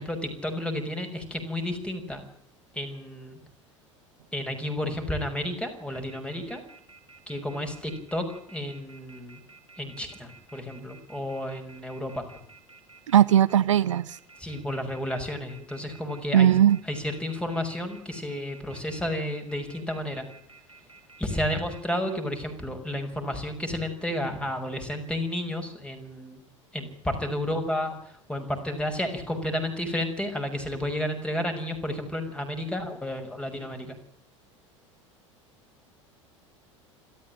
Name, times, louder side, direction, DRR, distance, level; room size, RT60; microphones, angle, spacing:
voice 1, 0.0-2.2 2.7-3.4 4.3-6.6 7.3-9.4 9.8-12.3 14.4-16.5 16.9-20.3 21.2-26.4 26.7-34.0, left 1 dB, 5° left, 6 dB, 6.1 m, -32 dB
sound 1, 5.9-22.1, right 4 dB, 85° right, 3.6 m, -52 dB
voice 2, 13.1-14.2 16.3-16.8, right 10 dB, 70° right, 16 dB, 0.9 m, -19 dB
27.5 x 13.5 x 9.1 m, 0.67 s
figure-of-eight pair, 75°, 16 cm